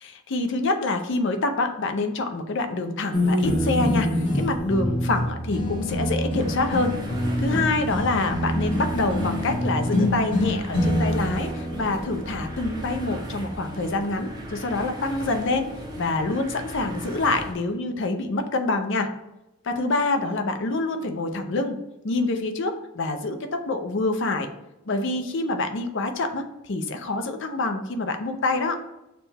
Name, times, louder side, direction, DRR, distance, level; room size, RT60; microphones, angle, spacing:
voice 1, 0.0-6.9 7.4-15.7 16.0-19.1 19.6-21.8 22.0-24.5 24.9-28.8, left 2 dB, 55° left, 6 dB, 0.5 m, -26 dB
sound 1, 3.1-13.7, left 1 dB, 25° left, 1.1 m, -26 dB
sound 2, 6.4-17.5, right 1 dB, 20° right, 0.6 m, -37 dB
6.5 x 2.2 x 3.3 m, 0.94 s
head